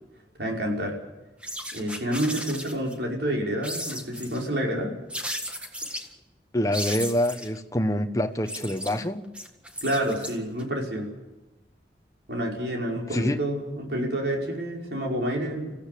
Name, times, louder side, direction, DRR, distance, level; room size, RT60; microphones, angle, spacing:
voice 1, 0.4-1.0 1.7-4.9 9.8-11.1 12.3-15.7, right 1 dB, 80° right, 5.4 m, -28 dB
sound 1, 1.4-2.9 3.6-4.5 5.1-6.1 6.7-7.6 8.2-10.6, equal, 5° right, 1.7 m, -35 dB
voice 2, 6.5-9.3 13.0-13.4, left 1 dB, 20° left, 1.0 m, -26 dB
26.5 x 15.5 x 8.4 m
head